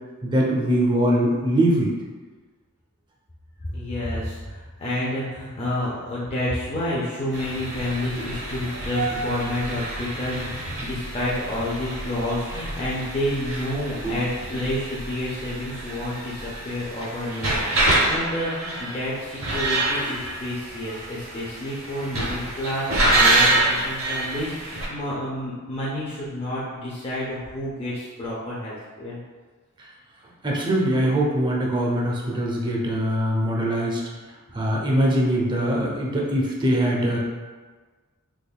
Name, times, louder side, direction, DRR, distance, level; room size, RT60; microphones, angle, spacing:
voice 1, 0.2-1.9 14.0-14.2 30.4-34.0 34.5-37.2, right 1 dB, 20° right, -3 dB, 0.5 m, -22 dB
voice 2, 3.6-29.2, left 1 dB, 25° left, -7 dB, 0.5 m, -29 dB
sound 1, 7.3-24.9, right 2 dB, 60° right, 0.8 m, -27 dB
3.5 x 3.2 x 2.2 m, 1.4 s
head